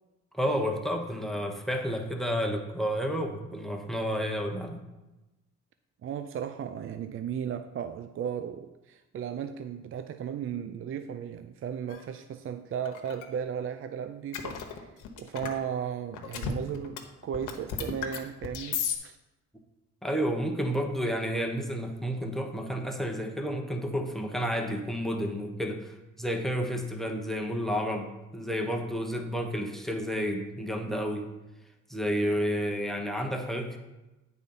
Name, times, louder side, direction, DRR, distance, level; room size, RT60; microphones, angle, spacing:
voice 1, 0.3-4.8 20.0-31.3 31.9-33.8, equal, ahead, 4 dB, 0.9 m, -31 dB
voice 2, 6.0-19.2, right 8 dB, 45° right, 10 dB, 0.4 m, -35 dB
sound 1, 11.9-12.0 12.9-13.3 14.3-15.6 16.1-17.0 17.2-19.0, left 7 dB, 85° left, 1.0 m, -34 dB
8.9 x 4.1 x 5.3 m, 1.0 s
cardioid pair, 90°, 30 cm